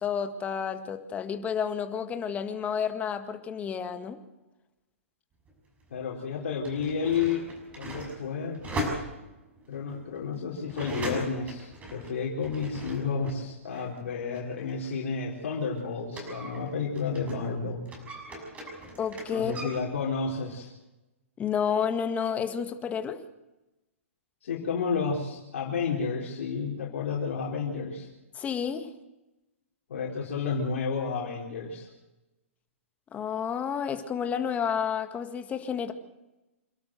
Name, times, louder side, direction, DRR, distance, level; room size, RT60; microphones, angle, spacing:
voice 1, 0.0-4.2 19.0-19.5 21.4-23.2 28.4-28.9 33.1-35.9, left 7 dB, 20° left, 8 dB, 1.9 m, -30 dB
sound 1, 5.5-5.6 6.4-13.4 13.7-17.5 17.8-19.8, right 1 dB, 20° right, 6.4 m, -39 dB
voice 2, 5.9-7.5 7.7-8.6 9.7-17.8 19.3-20.7 24.4-28.1 29.9-31.9, left 5 dB, 70° left, -3 dB, 4.5 m, -31 dB
27.5 x 12.5 x 8.0 m, 1.0 s
hypercardioid pair, 130°, 7 cm